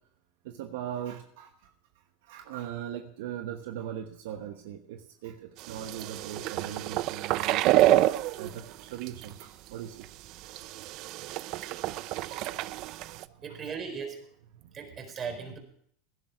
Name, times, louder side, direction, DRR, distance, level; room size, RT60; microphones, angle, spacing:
voice 1, 0.4-1.7 2.2-7.8 8.4-10.1 11.9-12.6 13.3-13.6 14.6-14.8, right 10 dB, 75° right, 6 dB, 1.1 m, -40 dB
sound 1, 5.6-8.6 9.0-9.4 10.0-10.1 10.4-13.2, right 15 dB, 55° right, 0.5 m, -28 dB
voice 2, 13.4-14.3 14.7-15.6, right 6 dB, 30° right, 5 dB, 4.5 m, -37 dB
17.5 x 11.0 x 4.7 m, 0.64 s
supercardioid pair, 110°, 0 cm